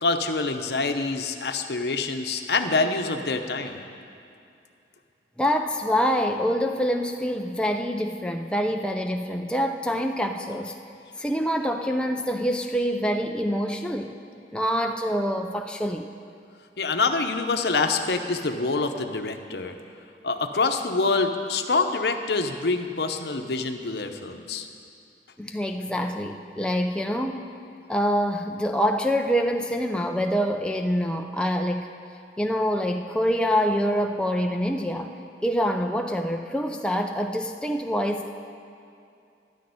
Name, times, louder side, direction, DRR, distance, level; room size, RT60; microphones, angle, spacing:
voice 1, 0.0-3.8 16.8-19.8 20.2-24.7, left 3 dB, 70° left, 6 dB, 0.8 m, -26 dB
voice 2, 5.4-10.7 11.2-14.2 14.5-16.1 25.4-27.5 27.9-31.9 32.4-35.1 35.4-38.3, equal, 5° left, 3 dB, 0.4 m, -26 dB
12.0 x 6.5 x 9.4 m, 2.5 s
head